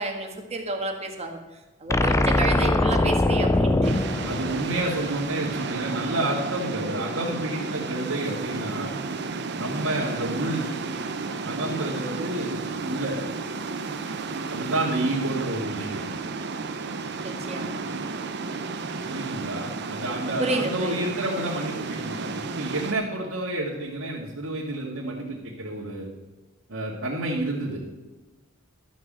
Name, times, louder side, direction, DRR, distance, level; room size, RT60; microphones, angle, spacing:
voice 1, 0.0-1.4 1.8-4.0 17.2-17.8 20.4-21.1, right 2 dB, 30° right, 3 dB, 1.6 m, -30 dB
sound 1, 1.9-5.2, left 2 dB, 15° left, 0.4 m, -22 dB
sound 2, 3.8-22.9, right 4 dB, 55° right, 0.9 m, -32 dB
voice 2, 4.2-8.9 9.5-10.7 11.4-12.6 12.8-13.2 14.5-16.0 19.1-26.1 26.7-27.8, right 1 dB, 90° right, -6 dB, 2.3 m, -29 dB
12.5 x 6.2 x 7.6 m, 1.2 s
head